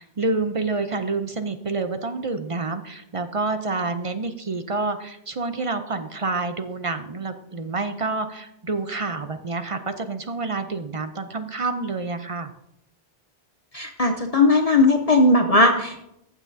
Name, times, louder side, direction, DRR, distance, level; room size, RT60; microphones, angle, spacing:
voice 1, 0.0-12.5, right 3 dB, 40° right, 8 dB, 0.6 m, -28 dB
voice 2, 13.7-16.0, left 2 dB, 40° left, 4 dB, 0.7 m, -18 dB
14.5 x 7.3 x 2.7 m, 0.80 s
omnidirectional pair, 1.0 m